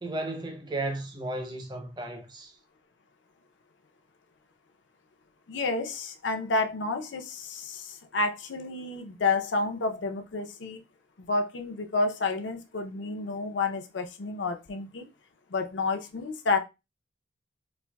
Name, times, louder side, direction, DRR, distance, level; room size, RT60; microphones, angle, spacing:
voice 1, 0.0-2.5, right 2 dB, 25° right, 0.6 m, -34 dB
voice 2, 5.5-10.8 11.2-15.1 15.5-16.6, left 3 dB, 85° left, 0.6 m, -30 dB
4.3 x 2.5 x 2.2 m
head